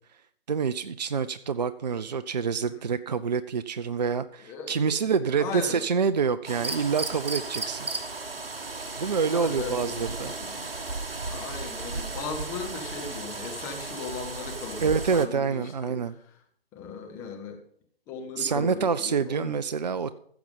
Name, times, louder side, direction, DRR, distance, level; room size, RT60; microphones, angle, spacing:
voice 1, 0.5-7.9 9.0-10.3 14.8-16.2 18.4-20.1, right 6 dB, 45° right, 13 dB, 0.5 m, -27 dB
voice 2, 4.4-5.0 5.4-5.8 9.2-10.6 11.2-15.9 16.7-17.6 18.1-19.5, left 5 dB, 10° left, 2 dB, 0.9 m, -37 dB
sound 1, 6.5-15.3, right 3 dB, 65° right, 1.7 m, -35 dB
15.0 x 6.9 x 5.3 m, 0.64 s
figure-of-eight pair, 145°, 31 cm